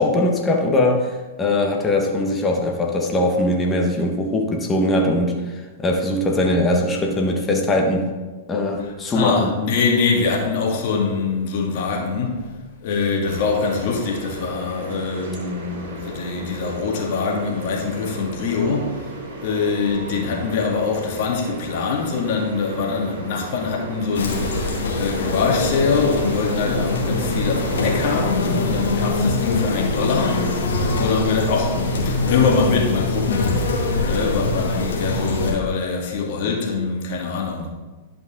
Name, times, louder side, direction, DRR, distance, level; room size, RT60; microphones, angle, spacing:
voice 1, 0.0-8.1 8.5-9.5, left 1 dB, 20° left, 1 dB, 1.5 m, -21 dB
voice 2, 8.8-12.5 12.8-19.1 19.4-30.6 31.0-33.8 34.0-37.7, left 4 dB, 55° left, -1 dB, 2.1 m, -23 dB
sound 1, 13.2-28.2, right 2 dB, 70° right, 2.4 m, -35 dB
sound 2, 24.1-35.5, left 2 dB, 75° left, 1.9 m, -23 dB
11.5 x 5.3 x 3.9 m, 1.3 s
hypercardioid pair, 110°, 0 cm